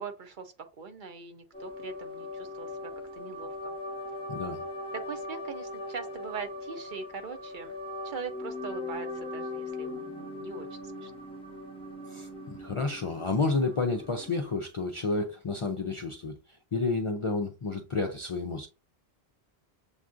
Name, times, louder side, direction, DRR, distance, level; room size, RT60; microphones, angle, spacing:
voice 1, 0.0-3.7 4.9-7.8 8.0-11.1, right 5 dB, 55° right, 0.7 m, -41 dB
sound 1, 1.5-14.5, left 2 dB, 5° left, 0.8 m, -40 dB
voice 2, 4.3-4.6 12.1-18.7, left 3 dB, 45° left, 0.4 m, -31 dB
7.0 x 2.4 x 2.5 m
omnidirectional pair, 1.1 m